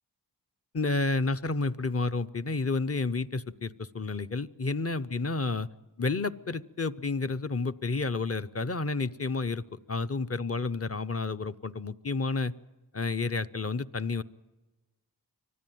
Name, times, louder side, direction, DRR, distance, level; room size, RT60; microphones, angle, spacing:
voice 1, 0.7-5.7 6.0-12.5 12.9-14.2, left 3 dB, 35° left, 11 dB, 0.7 m, -30 dB
25.5 x 16.0 x 9.2 m, 1.2 s
wide cardioid pair, 40°, 42 cm